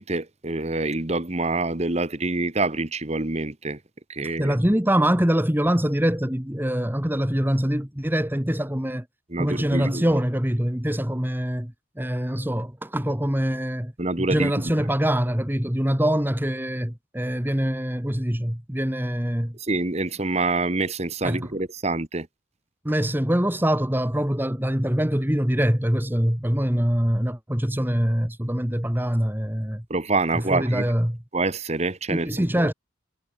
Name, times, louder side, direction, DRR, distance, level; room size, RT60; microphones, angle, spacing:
voice 1, 0.0-3.8 4.1-4.5 9.3-10.1 14.0-14.8 19.6-22.3 29.9-30.9 31.3-32.7, right 2 dB, 30° right, 1.4 m, -26 dB
voice 2, 4.4-9.1 9.4-13.9 14.2-19.6 21.2-21.5 22.8-29.8 30.3-31.2 32.1-32.7, equal, 10° right, 1.8 m, -24 dB
head